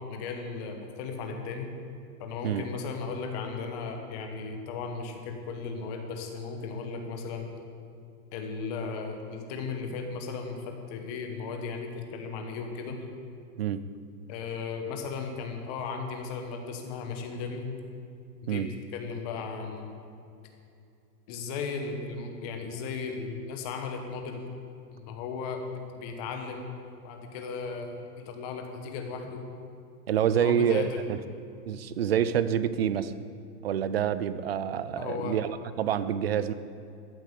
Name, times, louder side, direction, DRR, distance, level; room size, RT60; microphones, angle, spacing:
voice 1, 0.0-1.7 2.2-7.5 8.3-13.1 14.3-17.8 18.4-18.6 18.9-19.9 21.3-24.4 24.9-25.6 26.0-26.7 27.0-29.4 30.3-31.0 35.0-35.4, left 5 dB, 25° left, 4 dB, 1.3 m, -36 dB
voice 2, 30.1-31.2 31.7-33.1 33.6-36.5, right 9 dB, 40° right, 14 dB, 0.5 m, -27 dB
14.5 x 8.6 x 8.3 m, 2.6 s
supercardioid pair, 170°, 48 cm